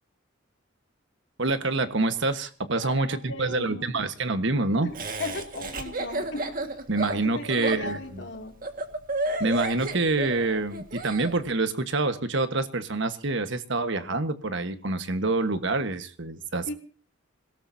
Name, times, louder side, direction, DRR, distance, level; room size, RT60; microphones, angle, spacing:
voice 1, 1.4-4.9 6.9-8.2 9.4-16.7, right 3 dB, 60° right, 10 dB, 1.4 m, -27 dB
voice 2, 2.8-4.0 4.8-6.6 7.1-8.6 16.7-16.8, left 2 dB, 55° left, 3 dB, 2.6 m, -37 dB
Laughter, 4.9-11.3, right 2 dB, 45° right, 1.8 m, -32 dB
26.5 x 17.5 x 2.8 m, 0.37 s
head